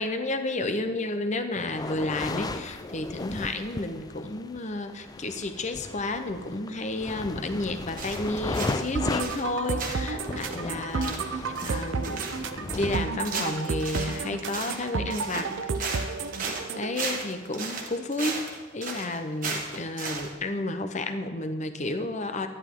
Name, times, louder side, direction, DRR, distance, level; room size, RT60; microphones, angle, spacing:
voice 1, 0.0-12.3 12.6-15.5 16.7-22.5, left 2 dB, 35° left, 8 dB, 0.7 m, -31 dB
sound 1, 1.6-13.0, left 2 dB, 20° left, 0.3 m, -36 dB
sound 2, 8.0-8.9 9.2-9.5 9.8-20.3, right 4 dB, 40° right, 1.3 m, -35 dB
sound 3, 9.0-16.9, right 4 dB, 60° right, 0.5 m, -32 dB
11.5 x 11.0 x 3.6 m, 1.3 s
head